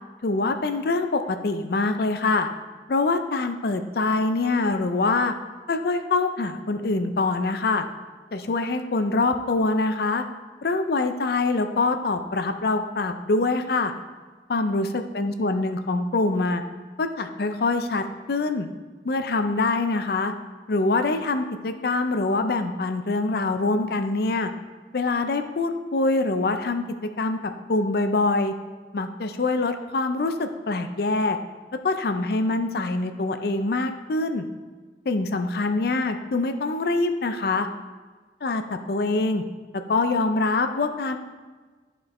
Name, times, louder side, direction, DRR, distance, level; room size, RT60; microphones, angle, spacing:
voice 1, 0.2-2.5 2.9-5.3 5.7-7.8 8.3-10.2 10.6-13.9 14.5-16.6 17.0-18.7 19.0-20.3 20.7-24.5 24.9-26.8 27.2-27.4 27.7-28.5 28.9-31.4 31.8-34.5 35.1-37.7 38.4-39.4 39.7-41.2, left 3 dB, 55° left, 7 dB, 0.5 m, -24 dB
11.5 x 4.4 x 3.2 m, 1.4 s
head